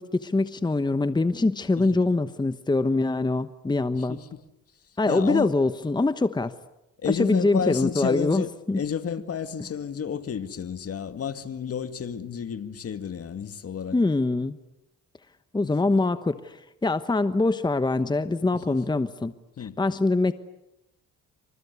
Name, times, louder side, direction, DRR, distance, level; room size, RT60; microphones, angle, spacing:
voice 1, 0.0-4.2 5.0-6.5 7.1-8.8 13.9-14.6 15.5-19.3 19.6-20.3, left 2 dB, 15° left, 1.0 m, -24 dB
voice 2, 3.9-4.4 5.1-5.5 7.0-14.0 15.6-15.8 18.5-18.8 19.6-19.8, left 7 dB, 50° left, 2.2 m, -31 dB
27.0 x 26.5 x 8.3 m
cardioid pair, 90°, 30 cm